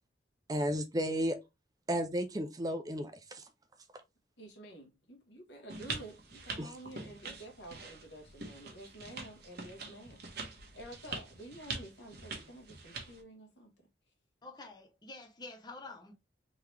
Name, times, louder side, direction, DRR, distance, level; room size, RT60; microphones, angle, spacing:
voice 1, 0.5-1.4 1.9-3.4 6.6-6.7, equal, 20° right, 0.5 m, -33 dB
voice 2, 4.4-10.3 10.7-13.7, right 1 dB, 65° left, 1.4 m, -50 dB
sound 1, 5.7-13.2, right 3 dB, 60° right, 1.2 m, -44 dB
voice 3, 14.4-16.1, left 3 dB, 25° left, 0.7 m, -48 dB
3.8 x 3.0 x 3.3 m
head